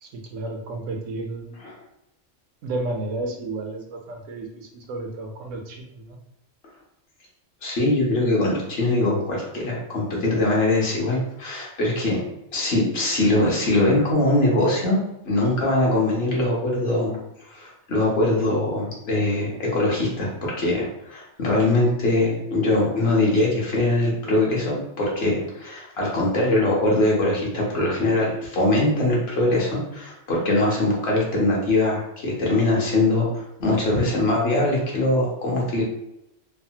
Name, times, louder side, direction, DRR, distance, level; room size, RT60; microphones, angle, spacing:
voice 1, 0.0-1.6 2.6-6.2, right 2 dB, 85° right, 3 dB, 1.0 m, -32 dB
voice 2, 7.6-12.2 12.5-17.2 17.5-35.8, left 2 dB, 60° left, -4 dB, 1.0 m, -22 dB
3.2 x 2.1 x 2.7 m, 0.84 s
omnidirectional pair, 1.3 m